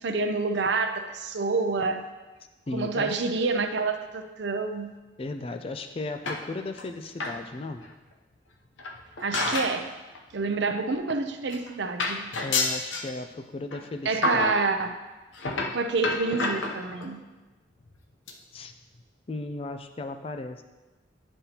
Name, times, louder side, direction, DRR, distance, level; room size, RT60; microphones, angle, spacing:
voice 1, 0.0-2.0 2.7-4.9 9.2-9.9 10.3-12.3 14.1-14.9 15.7-17.2, right 3 dB, 65° right, 7 dB, 0.6 m, -28 dB
voice 2, 2.7-3.2 5.2-7.9 12.4-14.5 18.5-18.7 19.3-20.6, left 2 dB, 30° left, 8 dB, 0.3 m, -35 dB
sound 1, 6.3-6.8 7.2-7.4 7.8-7.9 8.8-9.8 10.1-10.3 11.2-11.3 11.5-11.7 12.0-13.1 13.7-13.8 14.2-14.6 15.3-17.1 17.8-18.0 18.3-18.4 18.7-18.8 19.0-19.1, left 3 dB, 85° left, 0.7 m, -29 dB
9.6 x 5.3 x 2.9 m, 1.2 s
head